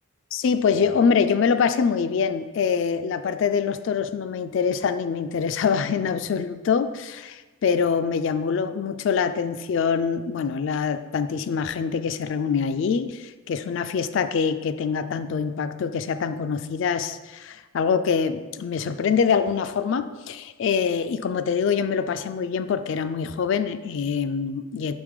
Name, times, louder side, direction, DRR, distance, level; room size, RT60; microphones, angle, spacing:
voice 1, 0.3-24.9, left 6 dB, 60° left, 11 dB, 0.3 m, -24 dB
6.0 x 3.6 x 4.8 m, 1.2 s
head